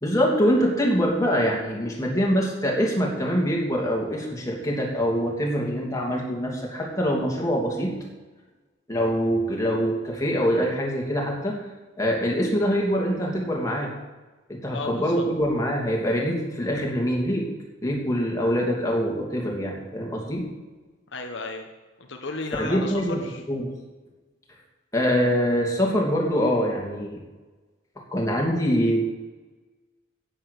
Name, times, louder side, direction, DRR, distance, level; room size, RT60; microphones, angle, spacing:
voice 1, 0.0-7.9 8.9-11.6 12.0-13.9 14.5-17.5 17.8-20.4 22.6-23.2 23.5-23.7 24.9-27.2 28.1-29.1, equal, 15° left, -2 dB, 2.9 m, -24 dB
voice 2, 14.7-15.3 21.1-21.7 22.0-23.4, left 3 dB, 70° left, 3 dB, 1.3 m, -34 dB
10.5 x 8.9 x 8.5 m, 1.2 s
head